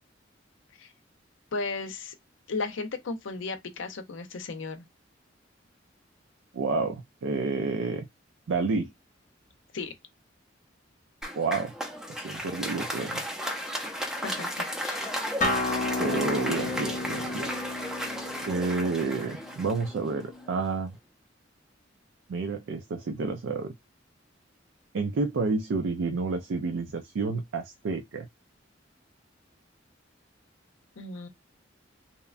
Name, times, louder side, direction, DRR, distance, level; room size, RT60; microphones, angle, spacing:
voice 1, 1.5-2.1 2.5-4.8 9.7-9.9 14.0-15.2 31.0-31.3, left 3 dB, 85° left, 0.6 m, -35 dB
voice 2, 6.5-8.1 8.5-8.9 11.3-11.7 12.2-13.2 16.0-17.5 18.5-20.9 22.3-23.7 24.9-28.2, right 4 dB, 75° right, 0.4 m, -29 dB
Applause, 11.2-20.6, equal, 5° right, 0.5 m, -34 dB
Acoustic guitar, 15.4-20.6, left 2 dB, 40° left, 0.6 m, -33 dB
2.8 x 2.2 x 2.4 m
head